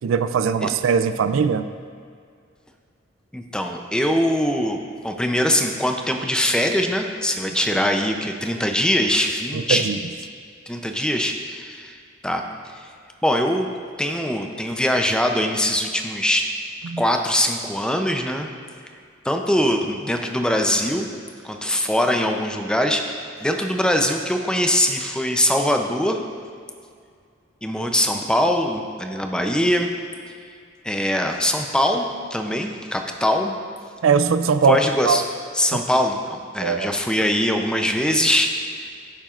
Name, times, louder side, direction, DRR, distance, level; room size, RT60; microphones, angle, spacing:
voice 1, 0.0-1.7 9.5-10.0 16.8-17.0 34.0-35.2 35.7-35.8 36.6-36.9, right 6 dB, 85° right, 11 dB, 0.4 m, -20 dB
voice 2, 3.3-4.8 5.0-9.8 10.7-12.0 12.2-12.4 13.2-13.7 14.0-16.5 17.0-18.5 19.2-21.1 21.4-26.2 27.6-29.9 30.8-33.5 34.7-35.2 35.5-38.5 38.8-38.9, left 1 dB, 5° left, 3 dB, 0.5 m, -22 dB
14.5 x 7.2 x 2.5 m, 2.2 s
head